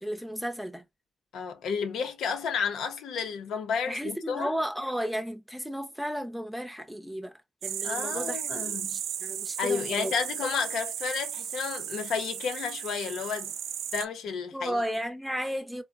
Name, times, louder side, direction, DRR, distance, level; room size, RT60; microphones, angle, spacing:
voice 1, 0.0-0.8 3.9-7.3 7.6-10.1 14.5-15.8, equal, ahead, 0.5 m, -34 dB
voice 2, 1.3-4.5 7.8-9.0 9.6-13.5 13.9-14.8, left 6 dB, 85° left, 0.6 m, -31 dB
sound 1, 7.6-14.1, right 9 dB, 85° right, 0.4 m, -35 dB
3.7 x 2.1 x 2.3 m
cardioid pair, 110°, 0 cm